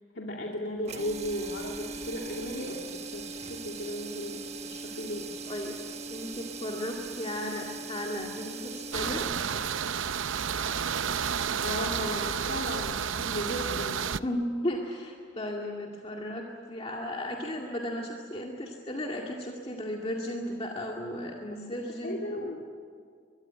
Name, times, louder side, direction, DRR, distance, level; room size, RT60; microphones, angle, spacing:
voice 1, 0.1-5.3 11.6-14.1 22.0-22.6, left 1 dB, 60° left, -1 dB, 2.6 m, -36 dB
sound 1, 0.8-10.9, right 4 dB, 35° right, 1.3 m, -40 dB
voice 2, 5.5-5.8 6.1-9.3 14.2-22.5, left 1 dB, 30° left, -1 dB, 2.2 m, -35 dB
sound 2, 8.9-14.2, right 7 dB, 75° right, 0.7 m, -31 dB
23.5 x 23.0 x 9.4 m, 2.1 s
head